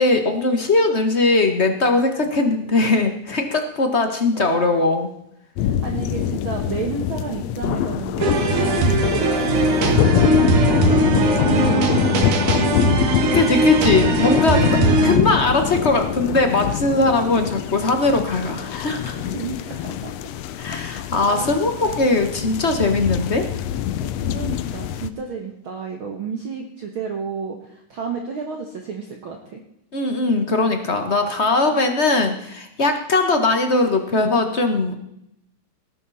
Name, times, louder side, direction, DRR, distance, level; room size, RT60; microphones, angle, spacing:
voice 1, 0.0-5.1 13.0-19.3 20.6-23.5 29.9-34.9, left 2 dB, 35° left, 6 dB, 1.0 m, -20 dB
sound 1, 5.6-25.1, left 10 dB, 75° left, 1.8 m, -24 dB
voice 2, 5.6-13.2 19.3-20.1 20.7-21.5 21.8-22.3 22.8-23.0 24.0-29.6 31.7-31.8, right 6 dB, 50° right, 2 dB, 1.9 m, -32 dB
sound 2, 8.2-15.2, right 2 dB, 90° right, 3.3 m, -19 dB
19.0 x 11.0 x 4.2 m, 0.78 s
omnidirectional pair, 3.4 m